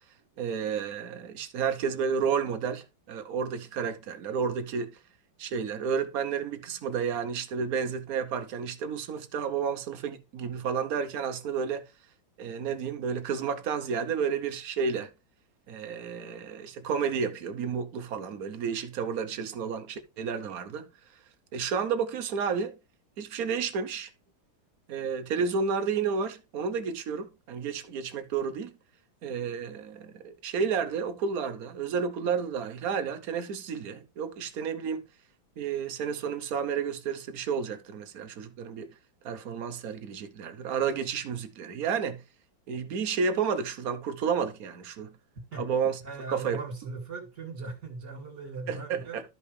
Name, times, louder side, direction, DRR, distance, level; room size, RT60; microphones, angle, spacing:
voice 1, 0.4-5.0 5.4-11.8 12.4-15.1 15.7-20.9 21.5-22.7 23.2-24.1 24.9-28.7 29.2-35.0 35.6-38.9 39.2-42.2 42.7-45.1 45.6-46.0 46.3-46.6 48.7-49.2, right 6 dB, 55° right, 1.2 m, -31 dB
voice 2, 46.0-49.2, right 3 dB, 40° right, 2.7 m, -39 dB
12.5 x 5.3 x 3.2 m
omnidirectional pair, 2.1 m